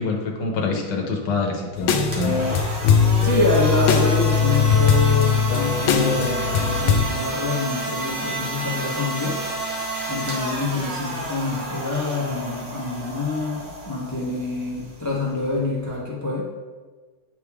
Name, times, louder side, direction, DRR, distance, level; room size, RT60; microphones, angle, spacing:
voice 1, 0.0-2.4, left 3 dB, 65° left, 0 dB, 1.5 m, -26 dB
sound 1, 1.8-7.0, left 6 dB, 85° left, 1.4 m, -20 dB
sound 2, 2.1-16.0, right 1 dB, 65° right, 1.8 m, -31 dB
voice 2, 3.2-9.4 10.1-16.5, left 3 dB, 25° left, -4 dB, 0.3 m, -26 dB
9.5 x 3.3 x 3.5 m, 1.4 s
omnidirectional pair, 2.1 m